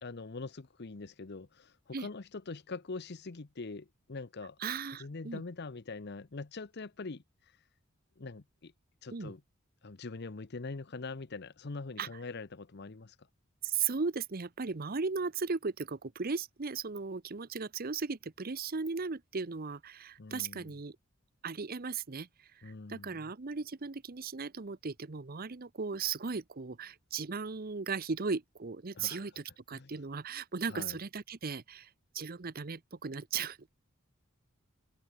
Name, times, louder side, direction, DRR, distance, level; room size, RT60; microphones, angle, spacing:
voice 1, 0.0-4.6 5.0-7.2 8.2-8.7 9.0-9.4 9.8-13.2 20.2-20.7 22.6-23.3 28.9-29.3 29.7-29.9 30.7-31.0, left 3 dB, 50° left, 0.8 m, -43 dB
voice 2, 4.6-5.4 9.1-9.3 12.0-12.1 13.6-21.0 21.4-22.3 22.6-31.9 32.1-33.7, right 5 dB, 45° right, 0.8 m, -37 dB
head